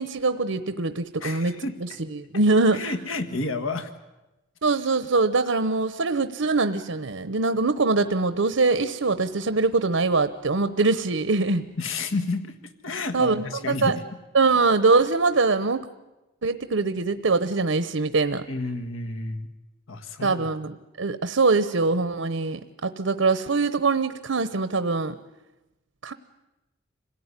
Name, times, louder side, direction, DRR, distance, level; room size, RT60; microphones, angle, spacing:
voice 1, 0.0-1.5 1.8-2.8 4.6-11.6 13.1-14.0 14.3-15.9 16.4-18.4 20.2-25.2 26.0-26.1, right 3 dB, 75° right, 12 dB, 0.9 m, -23 dB
voice 2, 1.2-1.7 2.7-3.9 11.8-14.0 18.5-19.5 19.9-20.5, left 3 dB, 75° left, 7 dB, 1.6 m, -30 dB
26.5 x 17.0 x 9.7 m, 1.0 s
head